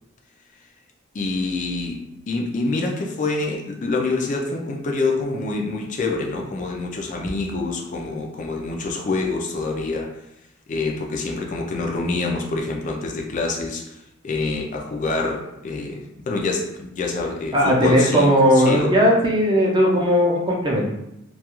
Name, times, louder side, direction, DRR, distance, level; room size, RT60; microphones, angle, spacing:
voice 1, 1.1-2.0 2.3-10.1 10.7-13.9 14.2-19.0, left 3 dB, 40° left, 1 dB, 0.3 m, -26 dB
voice 2, 17.5-20.9, equal, 25° right, -2 dB, 0.5 m, -17 dB
2.3 x 2.3 x 2.9 m, 0.84 s
head